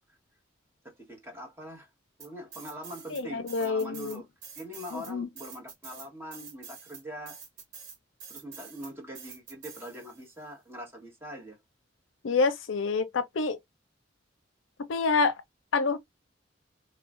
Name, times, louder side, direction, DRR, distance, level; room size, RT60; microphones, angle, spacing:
voice 1, 0.8-1.9 2.2-4.3 4.6-7.4 8.3-11.6, equal, 15° right, 1.1 m, -43 dB
sound 1, 2.2-3.2 3.5-10.3, right 6 dB, 75° right, 1.6 m, -47 dB
voice 2, 3.1-4.2 4.9-5.3 12.2-13.6 14.9-15.3 15.7-16.0, left 4 dB, 80° left, 0.5 m, -27 dB
3.2 x 2.3 x 2.4 m
head